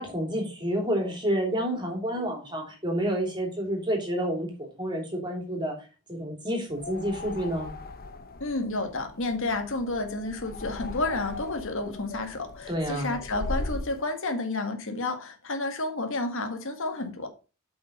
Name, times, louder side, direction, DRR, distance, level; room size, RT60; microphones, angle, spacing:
voice 1, 0.0-5.7 6.1-7.7 12.7-13.1, equal, 20° right, 3.2 m, -29 dB
sound 1, 6.7-14.0, left 2 dB, 45° left, 0.9 m, -38 dB
voice 2, 8.4-17.3, left 2 dB, 65° left, 1.9 m, -31 dB
8.0 x 5.9 x 5.3 m
head